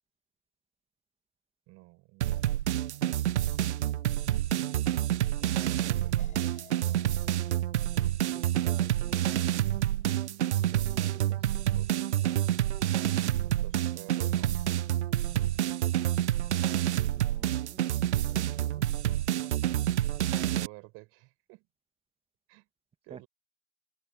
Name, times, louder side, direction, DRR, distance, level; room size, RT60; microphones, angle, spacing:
voice 1, 1.7-2.7 5.4-6.2 6.8-7.1 10.8-12.1 13.6-14.6 20.4-21.7 22.5-22.7 23.0-23.3, right 25 dB, 40° right, 5.4 m, -51 dB
sound 1, 2.2-20.7, right 12 dB, 75° right, 0.6 m, -28 dB
sound 2, 6.2-10.9, left 8 dB, 20° left, 7.2 m, -61 dB
voice 2, 8.3-9.5 10.7-11.4 17.1-18.9 23.1-23.2, right 6 dB, 15° right, 2.1 m, -51 dB
open air
hypercardioid pair, 105°, 35 cm